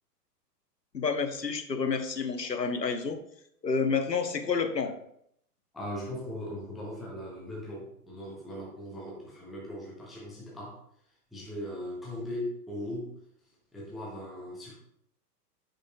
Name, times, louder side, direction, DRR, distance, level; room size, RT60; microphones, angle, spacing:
voice 1, 0.9-3.2 3.6-4.9, left 5 dB, 85° left, 6 dB, 1.0 m, -29 dB
voice 2, 5.7-10.8 11.3-13.1 13.7-14.7, left 1 dB, ahead, -5 dB, 0.5 m, -39 dB
10.0 x 5.2 x 2.2 m, 0.71 s
figure-of-eight pair, 110°, 48 cm